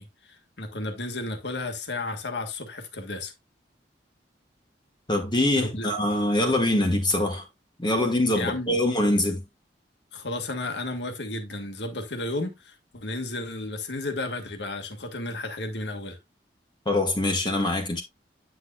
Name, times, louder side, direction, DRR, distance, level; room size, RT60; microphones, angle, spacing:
voice 1, 0.0-3.3 5.5-5.9 8.3-8.8 10.1-16.2, left 2 dB, 70° left, 1.6 m, -33 dB
voice 2, 5.1-7.4 7.8-9.4 16.9-18.0, left 1 dB, 25° left, 1.3 m, -24 dB
9.3 x 6.3 x 2.3 m
head